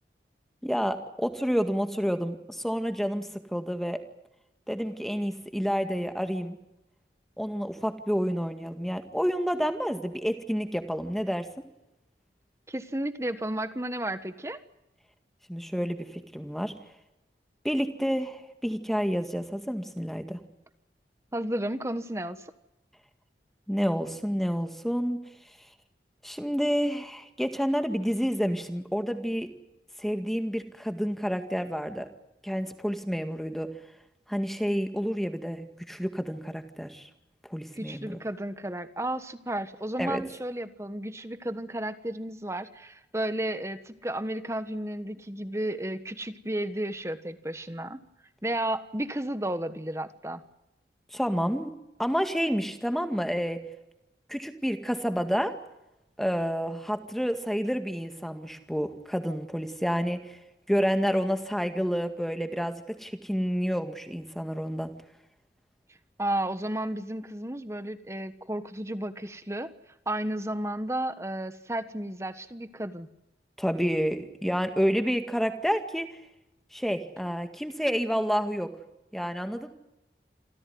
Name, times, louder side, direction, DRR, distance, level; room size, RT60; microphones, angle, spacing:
voice 1, 0.6-4.0 4.7-6.6 7.4-11.5 15.5-16.7 17.6-20.4 23.7-25.7 26.2-29.5 30.0-32.1 32.4-33.7 34.3-37.1 37.4-38.2 40.0-40.2 51.1-51.7 52.0-53.6 54.3-55.5 56.2-60.4 60.7-64.9 73.6-76.2 76.7-78.7 79.1-79.7, equal, ahead, 7 dB, 1.9 m, -29 dB
voice 2, 12.7-14.6 21.3-22.5 37.7-48.0 48.4-50.4 66.2-69.7 70.1-73.1, right 1 dB, 15° right, 11 dB, 1.3 m, -33 dB
27.5 x 15.5 x 9.5 m, 0.93 s
head